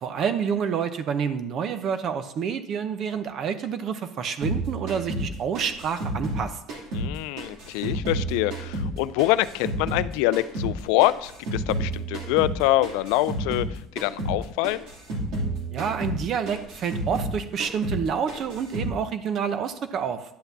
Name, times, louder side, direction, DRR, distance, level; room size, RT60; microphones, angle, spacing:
voice 1, 0.0-6.6 15.7-20.2, right 7 dB, 45° right, 11 dB, 0.7 m, -28 dB
sound 1, 4.4-7.1 7.4-10.1 10.3-13.7 14.0-14.4 14.6-17.3 17.6-18.0 18.3-18.9, right 1 dB, 70° right, 2.7 m, -30 dB
voice 2, 6.9-14.9, left 17 dB, 85° left, 15 dB, 0.3 m, -25 dB
10.0 x 8.1 x 2.7 m, 0.79 s
cardioid pair, 130°, 0 cm